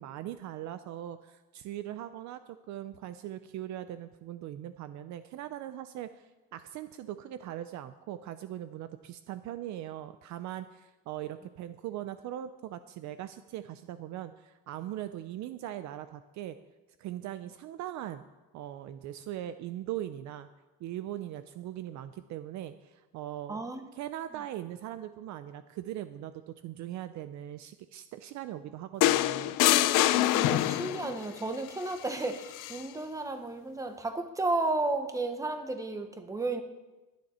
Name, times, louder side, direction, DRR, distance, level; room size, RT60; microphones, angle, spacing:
voice 1, 0.0-16.6 17.0-18.2 18.5-20.5 20.8-23.6 23.9-29.6, right 12 dB, 60° right, 12 dB, 0.6 m, -40 dB
voice 2, 23.5-23.8 30.1-36.6, right 2 dB, 10° right, 7 dB, 1.0 m, -33 dB
sound 1, 29.0-31.1 32.5-32.8, left 15 dB, 70° left, 0.6 m, -25 dB
22.0 x 9.5 x 4.3 m, 1.1 s
cardioid pair, 165°, 33 cm